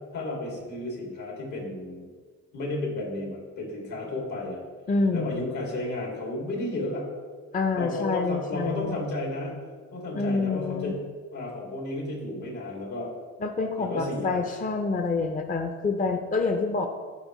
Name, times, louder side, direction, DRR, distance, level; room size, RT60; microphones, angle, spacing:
voice 1, 0.1-2.1 2.5-4.6 5.1-7.1 7.7-9.5 9.9-11.0 11.3-13.1 13.8-14.4, left 2 dB, 75° left, -2 dB, 2.5 m, -32 dB
voice 2, 4.9-5.4 7.5-9.0 10.1-10.9 13.4-16.9, left 3 dB, 30° left, 5 dB, 0.6 m, -27 dB
12.5 x 5.0 x 3.1 m, 1.6 s
cardioid pair, 90°, 30 cm